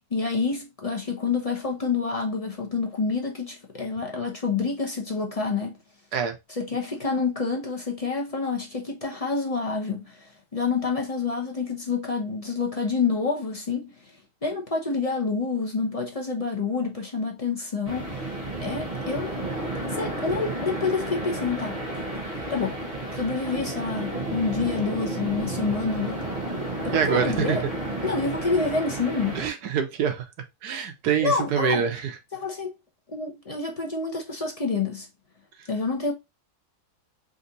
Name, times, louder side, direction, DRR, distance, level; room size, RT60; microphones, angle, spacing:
voice 1, 0.1-5.8 6.5-13.9 14.4-18.2 18.6-19.4 19.8-21.8 22.5-22.8 23.1-26.2 26.8-27.6 28.0-29.4 31.2-31.9 32.3-32.7 33.1-35.1 35.7-36.1, left 4 dB, 35° left, 0.6 m, -28 dB
sound 1, 17.9-29.5, right 1 dB, 30° right, 1.1 m, -32 dB
voice 2, 26.9-27.6 29.3-30.2 30.6-32.1, right 7 dB, 80° right, 1.3 m, -25 dB
4.0 x 2.6 x 3.9 m
omnidirectional pair, 1.7 m